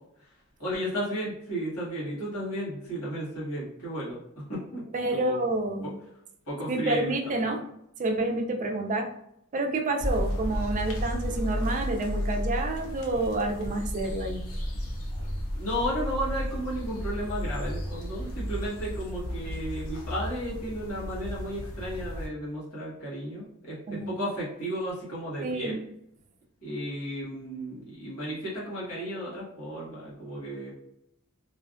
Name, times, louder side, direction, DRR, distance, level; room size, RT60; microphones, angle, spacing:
voice 1, 0.6-4.2 4.5-4.8 5.1-5.4 5.8-5.9 6.5-7.5 15.5-25.8 26.6-30.7, equal, 80° left, -7 dB, 1.2 m, -34 dB
voice 2, 4.9-5.9 6.7-7.6 8.0-9.1 9.5-14.4 23.9-24.2 25.4-25.8, right 2 dB, 35° right, 4 dB, 0.3 m, -29 dB
sound 1, 10.0-22.3, equal, 65° left, 0.6 m, -33 dB
2.5 x 2.2 x 2.4 m, 0.76 s
head